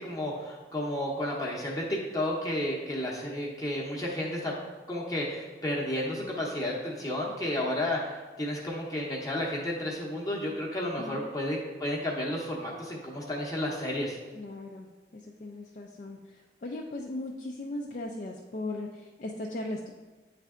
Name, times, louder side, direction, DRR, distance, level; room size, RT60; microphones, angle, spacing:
voice 1, 0.0-4.5 4.9-14.2, left 1 dB, 20° left, -3 dB, 0.8 m, -32 dB
voice 2, 14.3-19.9, left 2 dB, 45° left, 0 dB, 0.4 m, -38 dB
8.9 x 3.3 x 3.6 m, 1.3 s
head